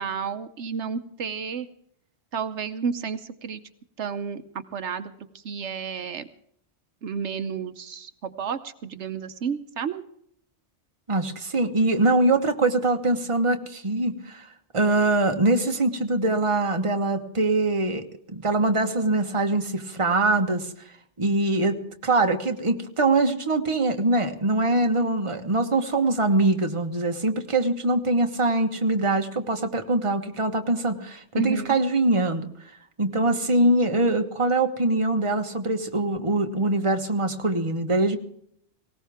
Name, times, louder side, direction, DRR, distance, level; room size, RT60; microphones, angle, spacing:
voice 1, 0.0-1.7 2.3-3.6 4.0-4.4 4.7-5.1 5.4-6.3 7.0-10.0 31.4-31.8, right 6 dB, 80° right, 10 dB, 1.2 m, -31 dB
voice 2, 11.1-20.7 21.2-32.5 33.0-38.2, right 2 dB, 30° right, 5 dB, 1.3 m, -23 dB
19.5 x 18.0 x 3.5 m, 0.68 s
omnidirectional pair, 1.2 m